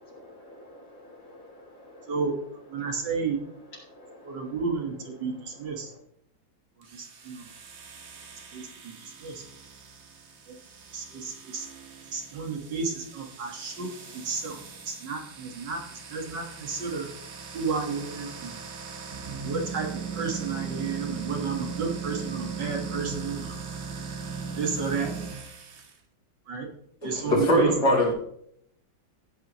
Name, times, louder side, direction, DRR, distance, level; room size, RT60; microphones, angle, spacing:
voice 1, 0.1-2.1 4.0-4.2, left 1 dB, 85° left, -2 dB, 3.9 m, -49 dB
voice 2, 2.1-3.4 4.2-5.9 6.8-7.5 8.3-9.4 10.5-10.6 10.9-11.7 12.1-14.6 14.9-17.1 17.5-18.6 19.4-19.9 20.1-23.6 24.6-25.1 26.5-26.7 27.0-27.9, right 5 dB, 70° right, 2 dB, 2.3 m, -32 dB
sound 1, 6.8-25.9, right 5 dB, 45° right, 1.2 m, -39 dB
voice 3, 27.2-28.1, equal, 60° left, -2 dB, 3.6 m, -21 dB
15.0 x 9.0 x 3.1 m, 0.70 s
omnidirectional pair, 2.0 m